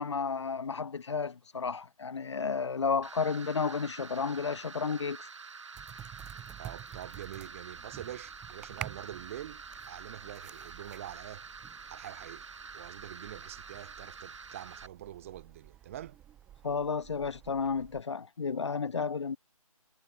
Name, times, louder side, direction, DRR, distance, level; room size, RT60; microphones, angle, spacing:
voice 1, 0.0-5.3 16.6-19.4, left 5 dB, 50° left, 1.6 m, -32 dB
sound 1, 3.0-14.9, right 5 dB, 55° right, 5.7 m, -47 dB
sound 2, 5.7-18.0, right 11 dB, 5° right, 0.9 m, -50 dB
voice 2, 6.6-11.4 11.9-12.5 12.7-16.2, right 12 dB, 25° right, 4.7 m, -45 dB
figure-of-eight pair, 165°, 19 cm